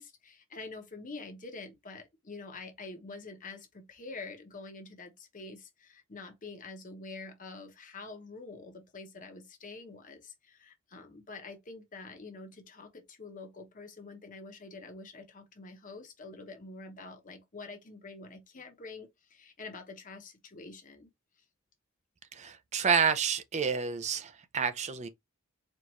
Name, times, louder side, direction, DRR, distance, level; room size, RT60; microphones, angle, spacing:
voice 1, 0.0-21.1, left 3 dB, 35° left, 0.9 m, -46 dB
voice 2, 22.3-25.1, right 6 dB, 30° right, 0.5 m, -29 dB
4.4 x 2.5 x 3.0 m
head